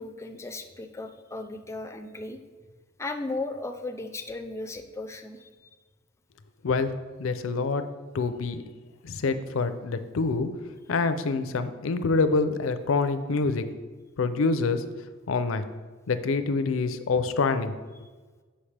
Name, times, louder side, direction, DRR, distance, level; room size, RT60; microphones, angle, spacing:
voice 1, 0.0-2.4 3.0-5.5 18.0-18.1, left 2 dB, 15° left, 5 dB, 0.4 m, -36 dB
voice 2, 7.2-7.8 8.1-8.6 9.0-10.5 10.9-13.6 14.2-14.8 15.3-15.6 16.1-17.7, left 4 dB, 70° left, 10 dB, 0.5 m, -26 dB
7.1 x 5.6 x 3.3 m, 1.4 s
head